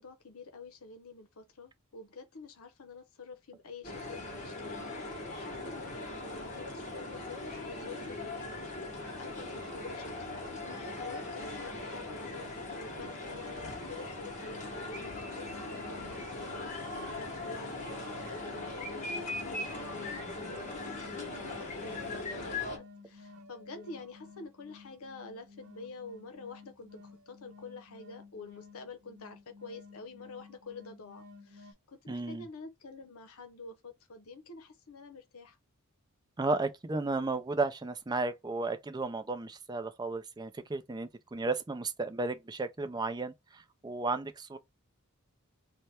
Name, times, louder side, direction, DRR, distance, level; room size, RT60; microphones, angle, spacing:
voice 1, 0.0-8.7 9.2-35.6, left 3 dB, 80° left, 0.7 m, -48 dB
sound 1, 3.8-22.8, left 2 dB, 35° left, 1.1 m, -40 dB
sound 2, 14.2-31.7, left 4 dB, 85° right, 0.9 m, -54 dB
voice 2, 32.1-32.5 36.4-44.6, right 3 dB, 20° right, 0.4 m, -34 dB
3.3 x 2.1 x 4.2 m
head